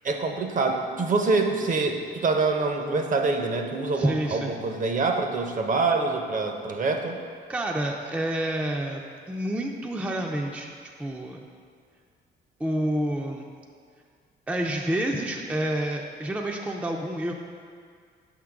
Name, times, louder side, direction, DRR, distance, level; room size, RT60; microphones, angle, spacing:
voice 1, 0.0-7.2, right 3 dB, 40° right, 4 dB, 0.7 m, -25 dB
voice 2, 3.9-4.5 7.5-9.0 9.3-10.7 11.0-11.4 12.6-13.5 14.5-17.3, right 1 dB, 5° right, 1 dB, 0.4 m, -28 dB
5.9 x 3.7 x 5.8 m, 2.1 s
cardioid pair, 90°, 20 cm